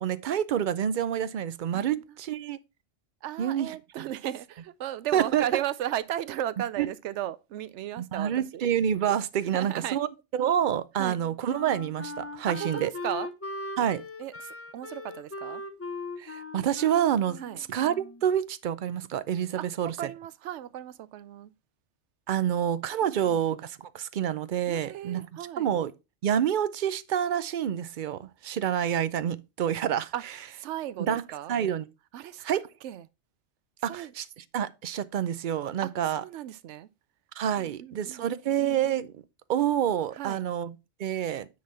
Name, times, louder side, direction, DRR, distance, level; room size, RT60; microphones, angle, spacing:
voice 1, 0.0-2.6 3.4-4.0 5.1-5.6 6.8-6.9 8.0-10.1 10.3-12.9 13.8-14.0 16.2-20.1 22.3-25.9 26.2-30.4 31.0-31.2 31.5-31.9 32.4-32.7 33.8-36.2 37.4-39.2 39.5-41.5, right 9 dB, 60° right, 0.6 m, -28 dB
voice 2, 3.2-8.6 9.5-10.0 11.0-11.2 12.5-13.3 14.2-15.6 17.4-17.6 19.6-19.7 20.0-21.5 23.0-23.4 24.7-25.7 30.1-30.2 30.5-31.6 32.1-32.4 32.8-33.0 33.9-34.1 35.8-35.9 36.2-36.9 37.6-38.2 40.2-40.4, right 12 dB, 85° right, 0.9 m, -35 dB
Wind instrument woodwind instrument, 11.0-18.3, left 3 dB, 20° left, 0.4 m, -39 dB
9.4 x 4.1 x 4.1 m
omnidirectional pair, 1.2 m